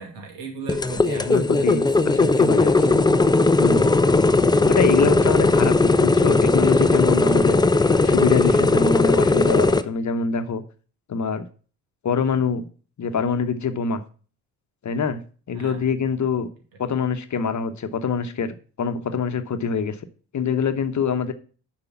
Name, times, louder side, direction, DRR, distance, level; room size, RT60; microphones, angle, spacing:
voice 1, 0.0-2.5 5.5-5.7 15.5-15.9, right 4 dB, 70° right, 3 dB, 2.4 m, -38 dB
sound 1, 0.7-9.8, left 3 dB, 10° left, 0.5 m, -18 dB
voice 2, 1.1-3.0 3.6-3.9 4.6-10.6 11.1-11.5 12.0-12.6 13.0-14.0 14.8-15.2 15.5-16.5 16.8-20.0 20.3-21.3, left 5 dB, 40° left, 9 dB, 1.0 m, -25 dB
6.9 x 4.9 x 7.1 m, 0.39 s
hypercardioid pair, 50°, 46 cm